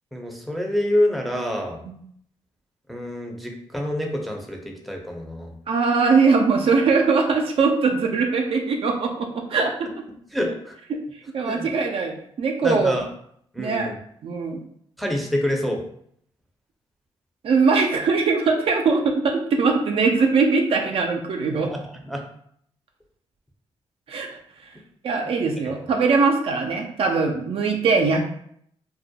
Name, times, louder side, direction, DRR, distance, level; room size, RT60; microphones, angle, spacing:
voice 1, 0.1-1.8 2.9-5.5 10.3-10.8 11.4-11.7 12.6-13.1 13.5-14.0 15.0-15.8 21.7-22.2, left 1 dB, ahead, 1 dB, 0.5 m, -26 dB
voice 2, 5.7-9.9 10.9-11.0 11.3-12.9 13.6-13.9 14.2-14.6 17.4-21.7 24.1-24.3 25.0-28.3, right 4 dB, 55° right, 3 dB, 0.4 m, -21 dB
2.2 x 2.0 x 2.7 m, 0.66 s
supercardioid pair, 60°, 11 cm